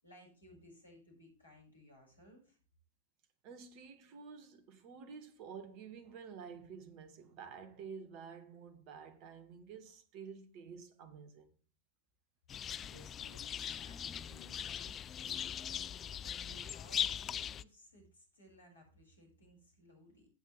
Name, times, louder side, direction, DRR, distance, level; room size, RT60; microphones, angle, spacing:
voice 1, 0.0-2.6 12.8-20.3, equal, 80° left, 6.3 m, -60 dB
voice 2, 3.4-11.5, right 6 dB, 40° right, 1.7 m, -50 dB
sound 1, 12.5-17.6, left 9 dB, 25° left, 0.4 m, -40 dB
16.5 x 5.8 x 3.3 m
figure-of-eight pair, 90°, 0 cm